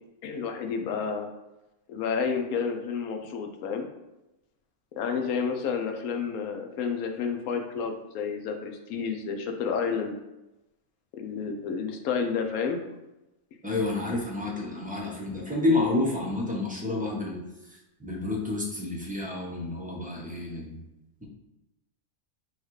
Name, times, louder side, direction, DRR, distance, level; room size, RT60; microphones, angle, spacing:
voice 1, 0.2-1.3 1.9-3.9 5.0-10.2 11.1-12.8, left 6 dB, 80° left, 5 dB, 1.1 m, -30 dB
voice 2, 13.6-17.4 17.7-20.8, left 2 dB, 10° right, -3 dB, 0.6 m, -29 dB
6.3 x 2.3 x 3.1 m, 0.95 s
omnidirectional pair, 1.5 m